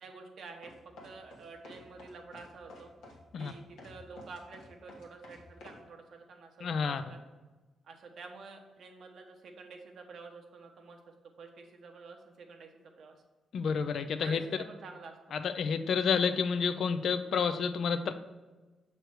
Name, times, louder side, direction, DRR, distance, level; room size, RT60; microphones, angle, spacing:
voice 1, 0.0-2.9 3.4-7.2 7.8-12.7 13.0-13.2 14.2-15.4, right 4 dB, 70° right, 3 dB, 0.9 m, -49 dB
sound 1, 0.6-5.8, left 2 dB, 90° left, 1.1 m, -51 dB
voice 2, 6.6-7.0 13.5-14.4 15.3-18.1, left 6 dB, 70° left, 10 dB, 0.4 m, -29 dB
6.4 x 3.3 x 4.6 m, 1.2 s
cardioid pair, 70°, 0 cm